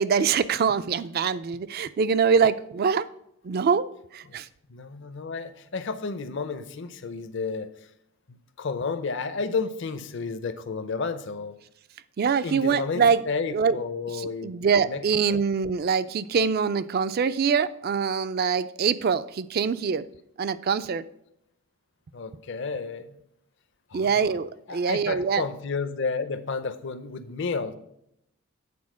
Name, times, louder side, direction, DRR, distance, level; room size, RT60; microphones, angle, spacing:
voice 1, 0.0-3.1 3.4-4.5 12.2-13.2 13.5-13.8 14.1-20.1 20.4-21.1 23.9-25.4, right 6 dB, 45° right, 15 dB, 0.3 m, -24 dB
voice 2, 4.7-7.7 8.6-11.5 12.4-15.4 22.1-23.1 23.9-24.4 24.7-27.7, left 4 dB, 55° left, 11 dB, 0.6 m, -32 dB
8.5 x 4.3 x 6.1 m, 0.77 s
head